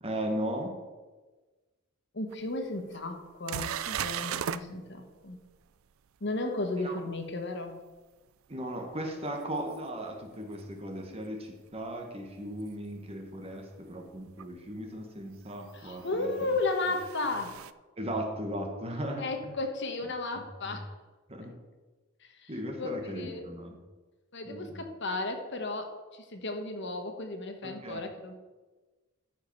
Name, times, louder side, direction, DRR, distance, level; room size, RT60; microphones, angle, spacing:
voice 1, 0.0-0.7 6.8-7.0 8.5-16.3 18.0-19.5 20.6-20.8 21.3-21.6 22.5-23.8 24.4-24.8 27.6-28.0, right 1 dB, 30° right, 3 dB, 1.4 m, -37 dB
voice 2, 2.1-5.4 6.2-7.7 15.7-17.6 19.2-20.9 21.4-21.5 22.2-22.5 22.8-23.4 24.3-28.4, left 2 dB, 55° left, 5 dB, 1.2 m, -34 dB
sound 1, 2.3-2.4 2.9-3.0 3.5-4.6 9.7-9.8 12.6-12.7 14.4-14.5 15.9-17.7, right 9 dB, 75° right, 0.4 m, -36 dB
13.0 x 5.2 x 5.4 m, 1.3 s
head